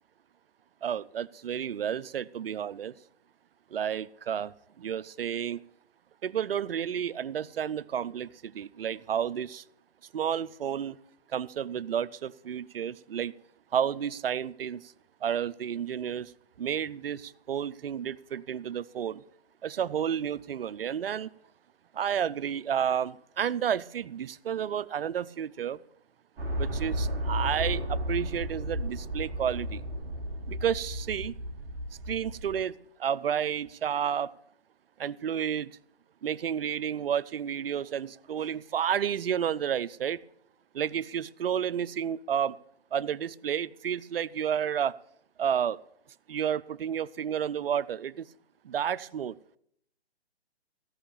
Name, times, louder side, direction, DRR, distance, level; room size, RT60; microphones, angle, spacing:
voice 1, 0.8-2.9 3.7-5.6 6.2-9.6 10.1-11.0 11.3-13.3 13.7-14.8 15.2-16.3 16.6-19.2 19.6-21.3 21.9-25.8 26.6-29.8 30.5-31.3 32.1-32.7 33.0-34.3 35.0-35.7 36.2-40.2 40.7-42.6 42.9-44.9 45.4-45.8 46.3-48.3 48.6-49.3, right 8 dB, 65° right, 17 dB, 0.5 m, -31 dB
sound 1, 26.4-32.6, equal, 5° right, 2.9 m, -33 dB
15.5 x 5.6 x 8.5 m, 0.69 s
hypercardioid pair, 155°, 32 cm